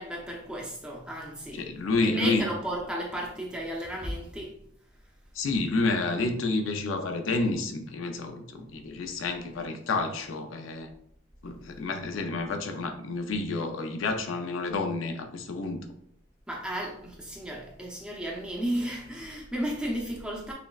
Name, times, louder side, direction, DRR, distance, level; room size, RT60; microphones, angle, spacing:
voice 1, 0.0-1.7 2.0-4.5 5.5-5.7 16.5-20.5, right 1 dB, 5° right, 0.6 m, -34 dB
voice 2, 1.5-2.4 5.3-10.9 11.4-15.9, left 3 dB, 85° left, 0.5 m, -29 dB
5.8 x 2.1 x 2.4 m
head